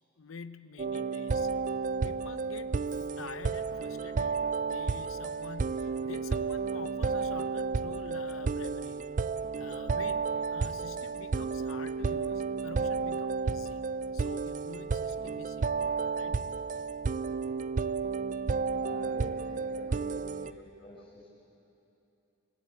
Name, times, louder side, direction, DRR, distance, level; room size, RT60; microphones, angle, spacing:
voice 1, 0.2-1.5 2.0-9.0 9.5-13.8 14.1-16.5, left 4 dB, 80° left, 11 dB, 0.7 m, -47 dB
sound 1, 0.8-20.5, right 4 dB, 40° right, 0.4 m, -32 dB
Wind instrument woodwind instrument, 2.4-9.2, equal, 50° left, 5.4 m, -60 dB
voice 2, 18.8-21.4, left 1 dB, 25° left, -4 dB, 5.9 m, -47 dB
26.5 x 16.5 x 8.3 m, 2.8 s
head